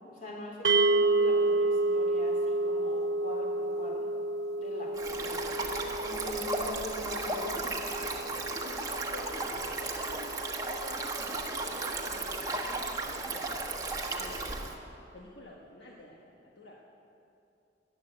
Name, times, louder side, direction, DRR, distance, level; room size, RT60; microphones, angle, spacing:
voice 1, 0.1-4.1 4.6-8.0, left 1 dB, 50° left, -1 dB, 3.3 m, -43 dB
sound 1, 0.6-10.9, right 2 dB, 70° right, 0.5 m, -30 dB
Stream, 4.9-14.7, right 2 dB, 20° right, 1.1 m, -35 dB
voice 2, 8.6-13.6 14.1-16.9, left 1 dB, 75° left, -2 dB, 1.4 m, -49 dB
14.0 x 10.5 x 8.1 m, 2.7 s
head